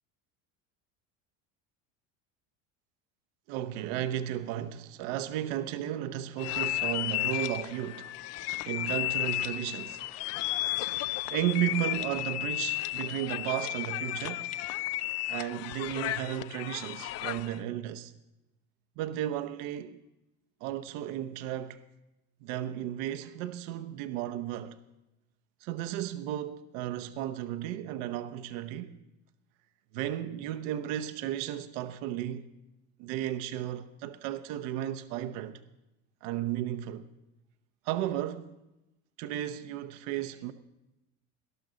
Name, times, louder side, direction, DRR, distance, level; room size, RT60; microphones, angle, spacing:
voice 1, 3.5-8.1 8.7-10.0 11.3-14.5 15.3-18.1 19.0-20.0 20.6-21.8 22.4-24.8 25.6-28.9 29.9-32.5 33.0-35.6 36.2-37.1 37.8-38.6 39.2-40.5, right 12 dB, 75° right, 0.9 m, -34 dB
sound 1, 6.4-17.6, left 16 dB, 45° left, 0.4 m, -33 dB
18.5 x 12.0 x 3.8 m
cardioid pair, 135°, 37 cm